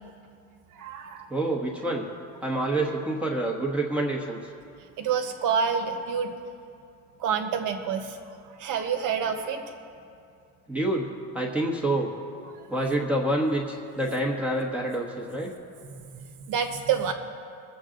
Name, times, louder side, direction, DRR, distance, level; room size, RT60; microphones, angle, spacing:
voice 1, 0.7-1.3 5.0-6.3 7.2-8.2 8.5-9.6 12.6-12.7 15.8-15.9 16.5-17.1, right 7 dB, 60° right, 5 dB, 1.3 m, -27 dB
voice 2, 1.3-2.1 2.4-4.4 10.7-11.1 11.3-12.1 12.7-15.5, right 1 dB, 5° right, -3 dB, 1.2 m, -27 dB
22.5 x 7.8 x 3.8 m, 2.5 s
cardioid pair, 140°, 36 cm